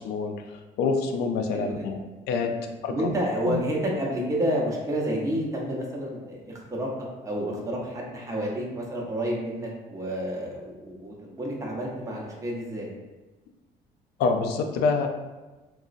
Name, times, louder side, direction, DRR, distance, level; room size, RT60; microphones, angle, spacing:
voice 1, 0.0-2.0 2.3-3.1 3.5-3.6 14.2-15.1, left 4 dB, 75° left, 5 dB, 0.4 m, -27 dB
voice 2, 1.5-1.8 2.6-6.9 7.2-12.9, right 1 dB, 20° right, -3 dB, 0.7 m, -30 dB
3.7 x 2.0 x 2.5 m, 1.2 s
cardioid pair, 110°, 17 cm